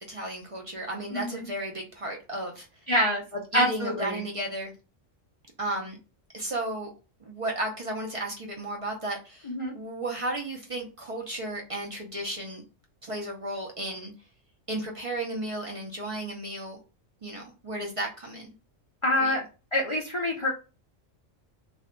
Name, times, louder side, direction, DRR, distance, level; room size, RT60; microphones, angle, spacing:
voice 1, 0.0-2.7 3.3-4.7 5.6-6.0 6.3-6.9 7.2-12.6 13.0-14.1 14.7-16.8 17.2-18.5 19.2-19.4, right 1 dB, 55° right, -1 dB, 0.3 m, -34 dB
voice 2, 1.1-1.5 2.9-3.2 3.5-4.2 9.5-9.7 19.0-19.4 19.7-20.5, left 1 dB, 45° left, -1 dB, 0.4 m, -26 dB
2.5 x 2.2 x 3.7 m, 0.32 s
omnidirectional pair, 1.3 m